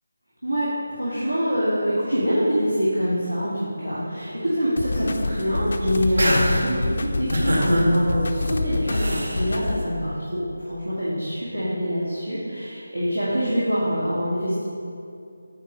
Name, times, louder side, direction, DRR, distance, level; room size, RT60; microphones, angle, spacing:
voice 1, 1.0-14.6, equal, 90° right, -9 dB, 2.0 m, -25 dB
sound 1, 4.8-9.8, left 2 dB, 50° left, 0.4 m, -27 dB
sound 2, 4.9-5.4 5.8-6.6 7.3-7.9 8.9-9.4, equal, 65° right, 1.9 m, -24 dB
8.6 x 4.7 x 5.1 m, 2.5 s
figure-of-eight pair, 160°, 0 cm